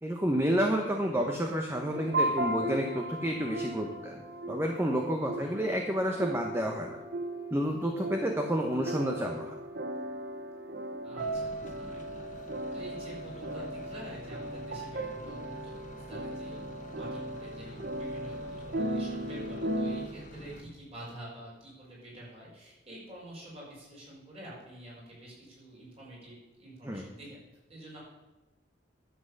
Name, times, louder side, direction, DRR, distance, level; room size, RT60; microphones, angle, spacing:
voice 1, 0.0-7.0 7.5-9.6 26.8-27.0, equal, 15° right, 2 dB, 1.0 m, -30 dB
sound 1, 1.9-20.1, right 1 dB, 55° right, 1.0 m, -36 dB
voice 2, 11.0-12.2 12.7-27.4 27.7-28.0, right 1 dB, 35° right, -5 dB, 5.4 m, -48 dB
sound 2, 11.2-20.6, left 1 dB, 40° left, 1.3 m, -47 dB
11.5 x 7.9 x 6.6 m, 1.1 s
head